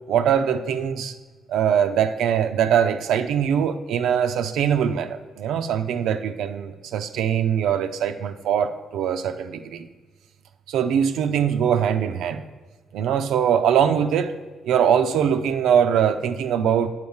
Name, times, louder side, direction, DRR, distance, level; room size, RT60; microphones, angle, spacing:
voice 1, 0.1-1.1 1.5-9.9 10.7-12.4 12.9-14.3 14.6-16.9, right 8 dB, 80° right, 9 dB, 0.5 m, -22 dB
8.1 x 4.6 x 7.1 m, 1.3 s
cardioid pair, 90°, 0 cm